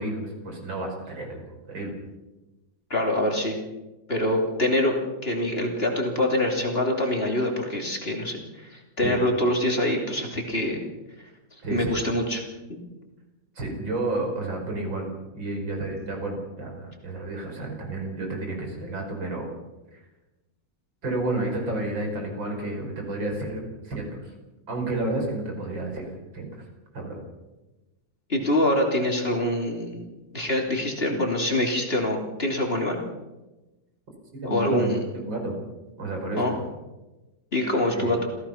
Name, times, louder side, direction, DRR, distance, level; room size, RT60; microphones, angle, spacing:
voice 1, 0.0-1.4 1.7-1.9 9.0-9.2 11.6-11.9 13.6-19.5 19.9-20.0 21.0-24.3 24.7-26.6 26.9-27.2 34.4-35.0 35.3-35.6 36.0-36.5 37.9-38.3, right 2 dB, 75° right, 2 dB, 5.9 m, -31 dB
voice 2, 2.9-3.6 4.1-5.0 5.2-10.8 11.7-12.4 12.7-12.8 28.3-30.0 30.3-33.0 34.4-35.0 36.4-36.5 37.5-38.2, left 1 dB, 30° left, 1 dB, 3.1 m, -25 dB
27.5 x 16.0 x 5.8 m, 1.1 s
omnidirectional pair, 2.1 m